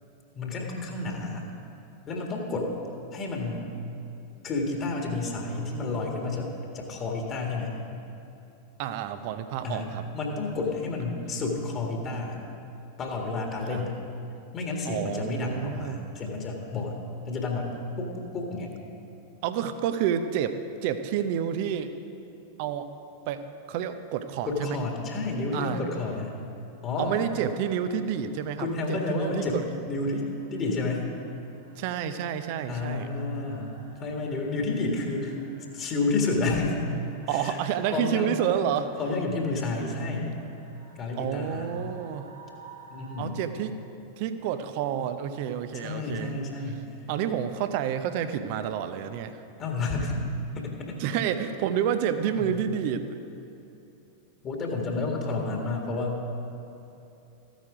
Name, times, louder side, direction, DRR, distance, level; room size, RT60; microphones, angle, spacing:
voice 1, 0.3-1.4 2.1-2.7 3.1-3.7 4.4-7.7 9.6-12.4 13.0-14.0 14.5-17.0 17.2-18.7 24.4-26.4 26.8-27.1 28.6-29.6 29.9-31.0 32.7-35.3 35.7-36.8 37.3-37.6 37.9-38.3 39.0-40.4 40.9-41.7 42.9-43.4 45.7-46.9 49.6-50.2 50.5-51.0 52.3-52.6 54.4-56.2, left 3 dB, 30° left, 1 dB, 1.8 m, -30 dB
voice 2, 8.8-10.1 13.7-13.9 14.9-16.0 19.4-20.5 20.8-22.0 22.6-22.9 23.3-24.8 25.5-25.8 27.0-29.6 31.8-33.1 37.3-38.9 41.2-42.3 43.2-43.8 44.2-46.4 47.1-49.4 51.0-53.2, right 9 dB, 45° right, 10 dB, 0.7 m, -29 dB
sound 1, 26.8-43.2, right 3 dB, 85° right, 2.5 m, -56 dB
14.0 x 9.2 x 5.0 m, 2.9 s
figure-of-eight pair, 90°, 0 cm